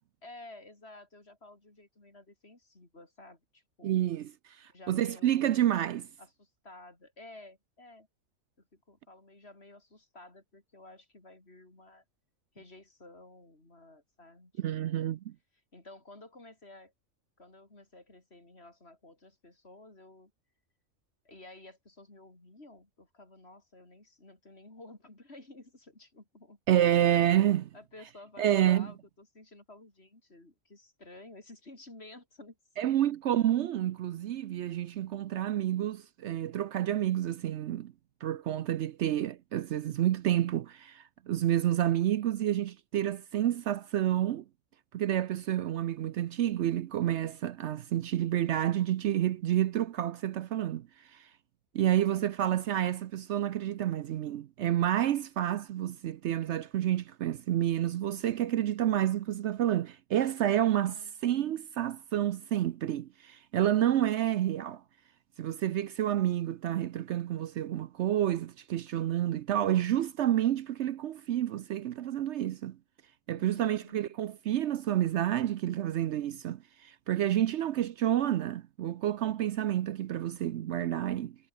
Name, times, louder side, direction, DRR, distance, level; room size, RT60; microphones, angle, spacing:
voice 1, 0.2-4.0 4.7-5.8 6.2-8.1 8.6-12.0 12.5-15.1 15.7-16.9 17.4-20.3 21.2-26.6 27.7-32.6 32.8-32.9 51.8-52.3 60.6-61.2 73.3-74.2, left 2 dB, 50° left, 5.0 m, -53 dB
voice 2, 3.8-4.3 4.6-6.1 14.6-15.3 26.7-27.7 28.4-28.9 32.8-37.9 38.2-44.4 44.9-51.3 51.7-61.0 61.2-64.8 65.4-72.8 73.3-81.4, right 11 dB, 65° right, 0.8 m, -29 dB
omnidirectional pair, 1.4 m